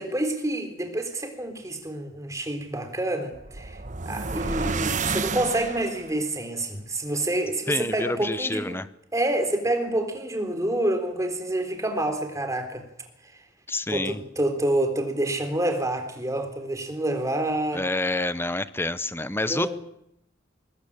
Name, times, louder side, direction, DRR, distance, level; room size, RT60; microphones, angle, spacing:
voice 1, 0.0-3.8 4.1-8.8 9.1-12.8 13.9-17.8 19.4-19.8, right 1 dB, 20° right, 6 dB, 3.8 m, -27 dB
sound 1, 3.3-6.2, right 4 dB, 45° right, 1.2 m, -30 dB
voice 2, 7.7-8.9 13.7-14.2 17.7-19.8, left 2 dB, 15° left, 15 dB, 0.9 m, -28 dB
23.0 x 19.0 x 8.8 m, 0.78 s
head